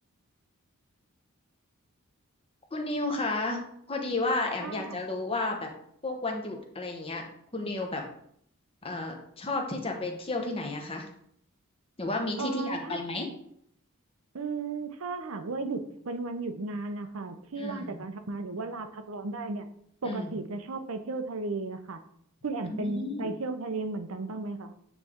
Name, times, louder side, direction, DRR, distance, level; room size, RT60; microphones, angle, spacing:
voice 1, 2.7-3.6 3.9-5.7 6.0-7.3 7.5-8.0 8.8-11.1 12.0-13.3 17.6-18.0 20.0-20.4 22.7-23.3, left 2 dB, 25° left, 2 dB, 0.9 m, -32 dB
voice 2, 4.6-5.0 12.4-13.3 14.3-19.6 20.0-22.0 22.4-24.7, right 3 dB, 70° right, 8 dB, 0.7 m, -35 dB
8.8 x 3.2 x 3.6 m, 0.70 s
head